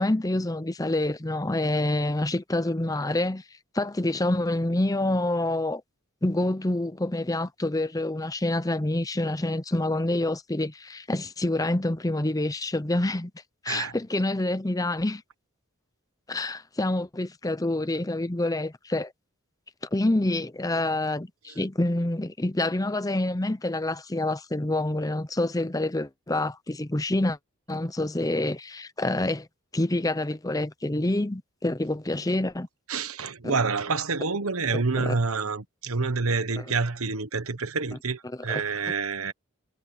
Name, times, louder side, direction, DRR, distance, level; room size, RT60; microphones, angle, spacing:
voice 1, 0.0-3.4 3.7-5.8 6.2-13.3 13.6-15.2 16.3-19.1 19.9-27.4 27.7-29.5 29.7-32.7 33.4-33.5 34.7-35.1 36.6-36.7 38.5-38.6, left 1 dB, 15° left, 0.7 m, -27 dB
voice 2, 32.9-39.3, right 4 dB, 80° right, 1.3 m, -28 dB
head